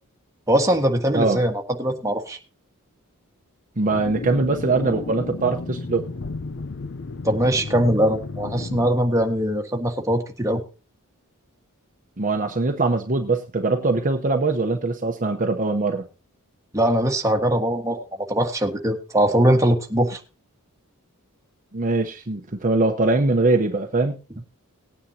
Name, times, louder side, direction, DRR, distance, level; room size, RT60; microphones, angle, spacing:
voice 1, 0.5-2.4 7.2-10.6 16.7-18.0 18.3-20.2, right 1 dB, 15° right, 3 dB, 1.6 m, -21 dB
voice 2, 3.8-6.1 12.2-16.1 21.7-24.2, right 3 dB, 35° right, 4 dB, 0.9 m, -22 dB
sound 1, 3.9-8.9, left 3 dB, 55° left, 0.6 m, -33 dB
19.0 x 9.5 x 2.8 m, 0.32 s
head